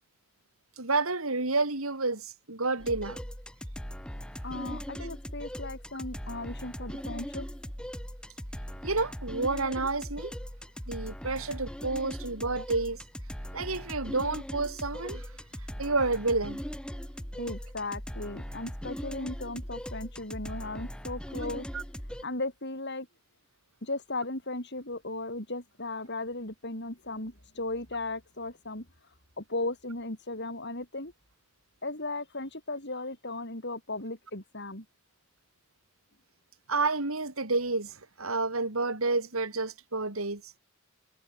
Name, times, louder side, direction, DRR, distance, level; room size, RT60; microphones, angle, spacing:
voice 1, 0.8-3.2 8.8-10.3 10.9-13.0 13.5-15.3 15.8-16.6 21.7-21.8 36.7-40.4, right 3 dB, 85° right, 3.7 m, -30 dB
sound 1, 2.8-22.2, equal, 5° left, 1.7 m, -39 dB
voice 2, 4.4-7.5 17.3-21.7 22.2-23.1 23.8-28.9 29.4-31.1 31.8-34.8, left 2 dB, 55° left, 7.6 m, -36 dB
head